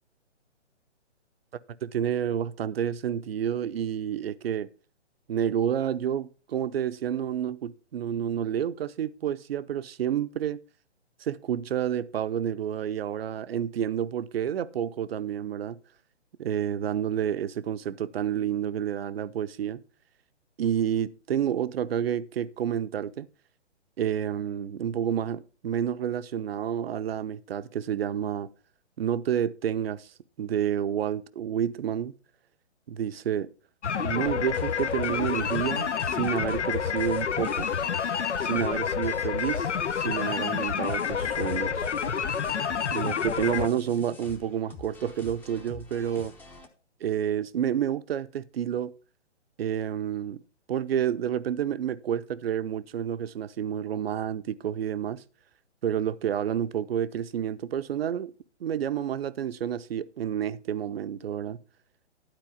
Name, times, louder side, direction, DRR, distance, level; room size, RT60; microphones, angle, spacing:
voice 1, 1.8-4.7 5.3-10.6 11.2-15.8 16.4-19.8 20.6-23.3 24.0-28.5 29.0-30.1 30.4-32.1 32.9-33.5 34.0-37.7 38.4-41.9 42.9-46.3 47.0-48.9 49.6-50.4 50.7-55.2 55.8-58.3 58.6-61.6, right 9 dB, 55° right, 0.7 m, -29 dB
sound 1, 33.8-43.7, left 7 dB, 75° left, 0.9 m, -28 dB
sound 2, 34.5-46.7, left 3 dB, 5° left, 0.7 m, -47 dB
12.0 x 4.5 x 7.0 m
figure-of-eight pair, 135°, 35 cm